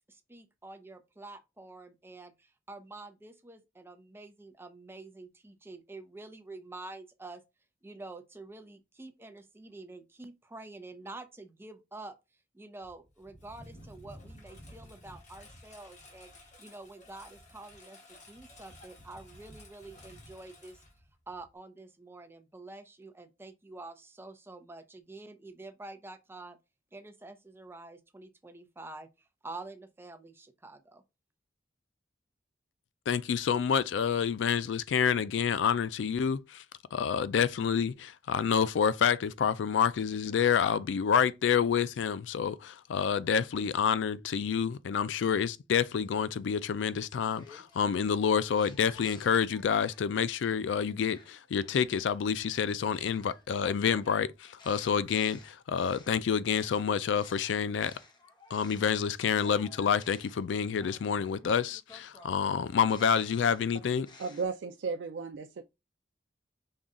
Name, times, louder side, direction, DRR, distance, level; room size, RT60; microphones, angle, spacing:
voice 1, 0.1-7.4 7.8-12.2 12.5-20.8 21.3-26.6 26.9-31.0, right 2 dB, 15° right, 0.6 m, -48 dB
Engine, 12.8-21.6, left 1 dB, 40° left, 1.3 m, -53 dB
voice 2, 33.1-36.6 36.9-57.9 58.5-64.1, left 7 dB, 85° left, 0.4 m, -28 dB
sound 1, 46.0-50.2 50.6-58.9 59.2-64.4, left 3 dB, 25° left, 0.8 m, -55 dB
voice 3, 64.2-65.6, right 4 dB, 90° right, 0.4 m, -35 dB
5.4 x 2.3 x 3.6 m
head